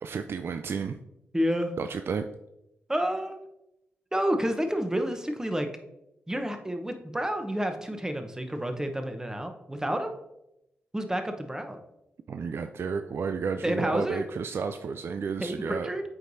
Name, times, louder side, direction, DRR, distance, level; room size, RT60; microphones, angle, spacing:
voice 1, 0.0-1.0 1.8-2.2 12.3-15.9, right 5 dB, 55° right, 7 dB, 0.3 m, -32 dB
voice 2, 1.3-1.7 2.9-3.4 4.1-5.7 6.3-10.2 10.9-11.8 13.6-14.3 15.4-16.0, equal, 10° right, 6 dB, 0.9 m, -29 dB
7.8 x 4.6 x 2.7 m, 0.87 s
supercardioid pair, 40°, 5 cm